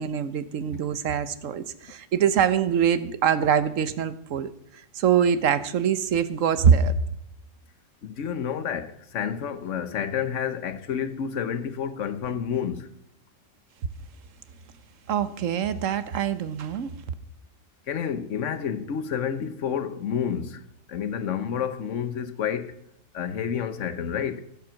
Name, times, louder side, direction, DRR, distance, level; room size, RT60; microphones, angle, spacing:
voice 1, 0.0-4.5 4.9-7.0 15.1-16.9, right 8 dB, 80° right, 1.3 m, -23 dB
voice 2, 8.0-12.9 17.9-22.7 23.1-24.4, left 8 dB, 75° left, 1.3 m, -29 dB
16.0 x 7.5 x 6.3 m
omnidirectional pair, 1.3 m